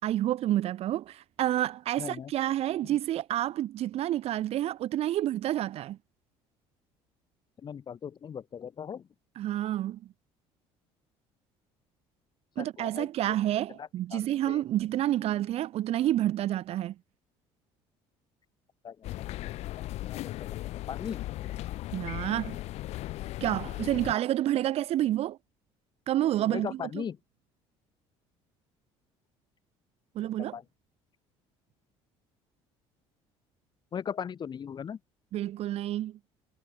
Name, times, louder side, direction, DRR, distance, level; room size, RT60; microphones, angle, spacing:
voice 1, 0.0-6.0 9.3-10.0 12.6-16.9 21.9-22.6 23.4-25.4 26.1-27.0 30.1-30.6 35.3-36.2, right 13 dB, 60° right, 4.8 m, -29 dB
voice 2, 2.0-2.3 7.6-9.1 12.6-13.1 13.8-14.6 18.8-19.6 20.1-20.6 20.9-21.2 26.5-27.2 30.5-30.6 33.9-35.0, left 7 dB, 40° left, 7.3 m, -38 dB
sound 1, 19.0-24.1, left 16 dB, 70° left, 5.9 m, -37 dB
cardioid pair, 115°, 12 cm